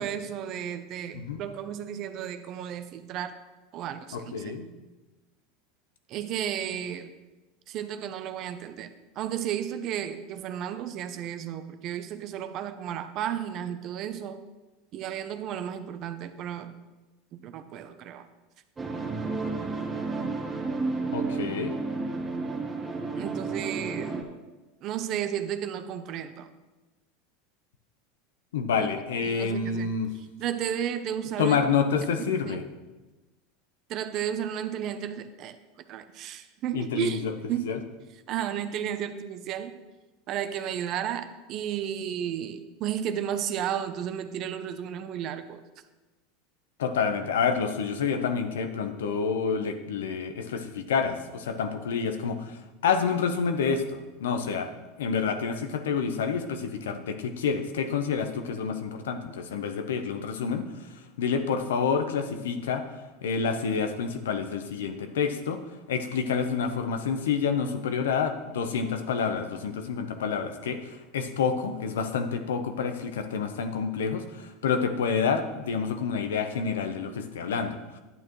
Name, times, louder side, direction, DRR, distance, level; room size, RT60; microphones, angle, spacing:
voice 1, 0.0-3.4 3.7-4.5 6.1-7.1 7.7-14.4 14.9-16.7 17.3-18.3 23.2-24.2 24.8-26.5 28.8-29.0 29.2-29.9 30.4-31.6 32.4-32.6 33.9-35.6 35.9-37.7 38.3-39.7 40.3-45.6, right 9 dB, 50° right, 10 dB, 0.7 m, -33 dB
voice 2, 4.1-4.7 21.1-21.7 28.5-30.1 31.4-32.6 36.7-37.3 37.6-37.8 46.8-54.7 55.0-62.9 63.2-65.6 65.9-78.0, left 6 dB, 85° left, 8 dB, 0.9 m, -28 dB
sound 1, 18.8-24.2, right 3 dB, 20° right, 1.3 m, -31 dB
11.0 x 8.7 x 3.2 m, 1.2 s
hypercardioid pair, 105°, 0 cm